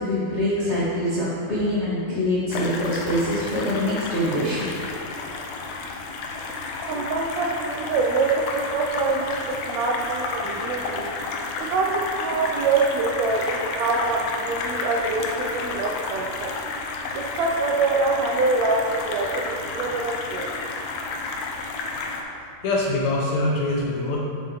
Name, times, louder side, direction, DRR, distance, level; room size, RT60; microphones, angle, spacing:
voice 1, 0.0-4.6, left 1 dB, 50° left, -10 dB, 0.7 m, -24 dB
sound 1, 2.5-22.2, left 3 dB, 85° left, 1.5 m, -31 dB
voice 2, 6.9-11.1 11.6-16.5 17.1-20.5, right 3 dB, 80° right, -1 dB, 1.5 m, -25 dB
voice 3, 22.6-24.2, left 2 dB, 70° left, -3 dB, 2.0 m, -24 dB
7.1 x 7.1 x 4.0 m, 2.5 s
omnidirectional pair, 3.8 m